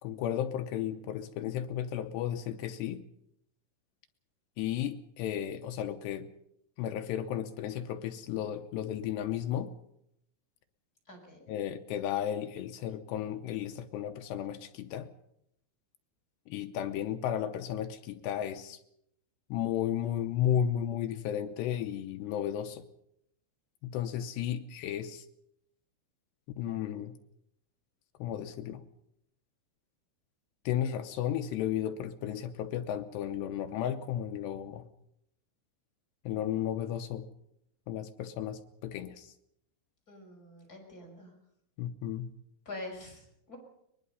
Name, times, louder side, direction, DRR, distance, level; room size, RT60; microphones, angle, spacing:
voice 1, 0.0-3.0 4.6-6.3 6.8-9.7 11.5-15.1 16.5-18.8 19.5-22.9 23.8-25.3 26.6-27.1 28.2-28.8 30.7-34.9 36.3-37.3 37.9-39.3 41.8-42.3, left 10 dB, 80° left, 7 dB, 2.5 m, -34 dB
voice 2, 11.1-11.5 40.1-41.3 42.7-43.6, left 2 dB, 15° left, 1 dB, 5.6 m, -45 dB
23.0 x 21.0 x 5.5 m, 0.77 s
omnidirectional pair, 5.9 m